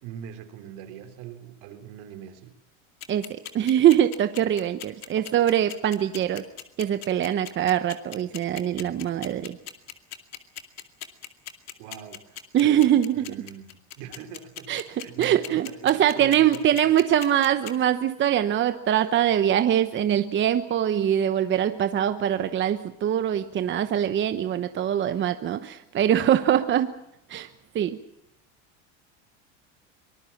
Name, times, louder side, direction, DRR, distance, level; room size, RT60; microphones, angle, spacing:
voice 1, 0.0-2.5 5.2-5.3 11.8-13.7 14.0-17.0, right 9 dB, 70° right, 8 dB, 3.8 m, -42 dB
sound 1, 3.0-17.7, left 12 dB, 45° left, 2.4 m, -38 dB
voice 2, 3.1-6.5 6.8-9.6 12.5-13.3 14.7-27.0 27.3-27.5 27.7-28.0, right 10 dB, 30° right, 10 dB, 1.0 m, -23 dB
24.5 x 19.5 x 7.3 m, 0.80 s
supercardioid pair, 130°, 36 cm